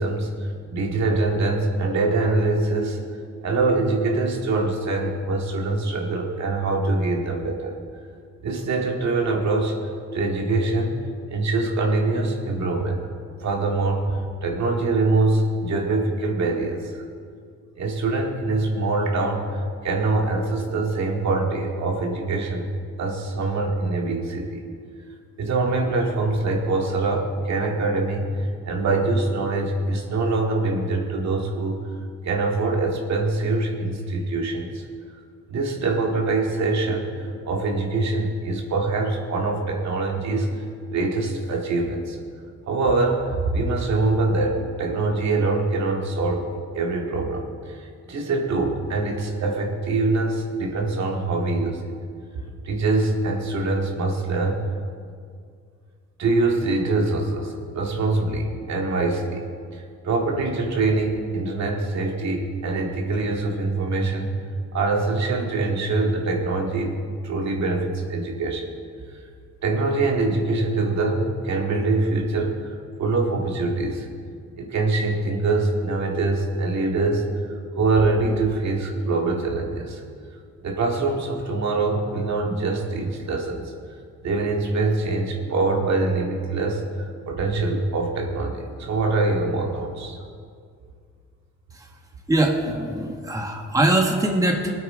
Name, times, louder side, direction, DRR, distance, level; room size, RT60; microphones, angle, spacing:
voice 1, 0.0-3.0 3.4-7.8 8.4-9.8 10.1-11.0 11.3-13.0 13.4-17.0 17.8-22.7 23.0-24.6 25.4-31.8 32.2-34.8 35.5-42.2 42.7-46.5 46.7-51.9 52.4-54.6 56.2-59.4 59.7-64.4 64.7-67.0 67.2-68.7 69.6-72.5 73.0-74.1 74.6-77.2 77.8-80.0 80.6-83.7 84.2-90.2, right 3 dB, 65° right, 0 dB, 2.2 m, -24 dB
voice 2, 92.3-94.7, right 1 dB, 10° right, 1 dB, 1.4 m, -22 dB
19.5 x 8.8 x 3.9 m, 2.2 s
cardioid pair, 90°, 30 cm